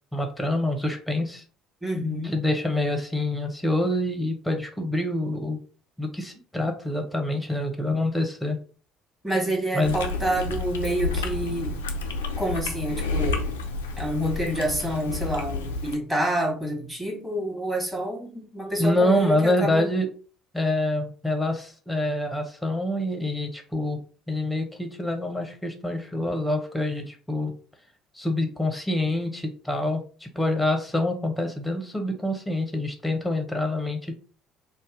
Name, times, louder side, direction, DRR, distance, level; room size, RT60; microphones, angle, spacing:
voice 1, 0.1-1.4 2.3-5.6 6.0-8.6 9.7-9.9 18.8-20.1 20.5-24.0 24.3-27.5 28.1-34.1, left 1 dB, 5° left, 4 dB, 0.8 m, -26 dB
voice 2, 1.8-2.4 9.2-11.8 12.4-13.4 14.0-19.9, right 1 dB, 10° right, -1 dB, 1.3 m, -28 dB
Chewing mastication, 9.8-15.9, left 3 dB, 75° left, 0.4 m, -30 dB
2.6 x 2.1 x 3.8 m, 0.40 s
figure-of-eight pair, 55°, 0 cm